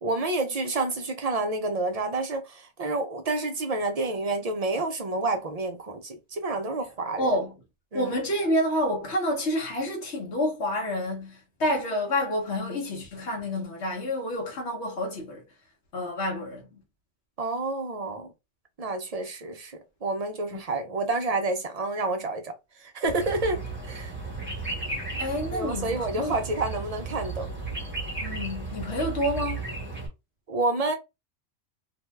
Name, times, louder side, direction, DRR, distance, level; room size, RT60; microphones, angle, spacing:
voice 1, 0.0-7.3 7.9-8.1 17.4-18.3 18.8-22.5 22.8-24.1 25.5-27.5 30.5-30.9, right 2 dB, 55° right, 0.4 m, -29 dB
voice 2, 7.2-7.5 7.9-15.4 15.9-16.8 25.2-26.4 28.2-29.6, left 1 dB, 70° left, 1.1 m, -28 dB
sound 1, 23.0-30.1, right 3 dB, 10° right, 1.0 m, -34 dB
2.6 x 2.2 x 3.1 m
omnidirectional pair, 1.2 m